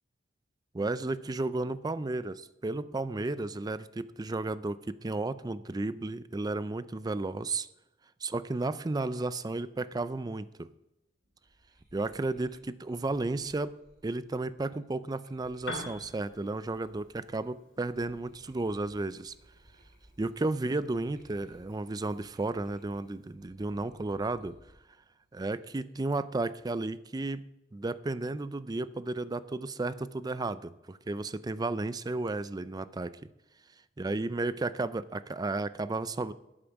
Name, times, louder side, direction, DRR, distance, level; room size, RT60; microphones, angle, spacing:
voice 1, 0.7-7.7 8.2-10.7 11.9-13.7 14.0-19.3 20.2-24.6 25.3-27.4 27.7-33.2 34.0-36.3, right 2 dB, 20° right, 15 dB, 0.4 m, -33 dB
sound 1, 11.2-17.5 17.8-24.8 25.2-25.9, right 1 dB, 50° right, 3.6 m, -61 dB
Piano, 15.5-23.4, left 2 dB, 75° left, 3.3 m, -49 dB
11.5 x 8.7 x 5.1 m, 0.94 s
head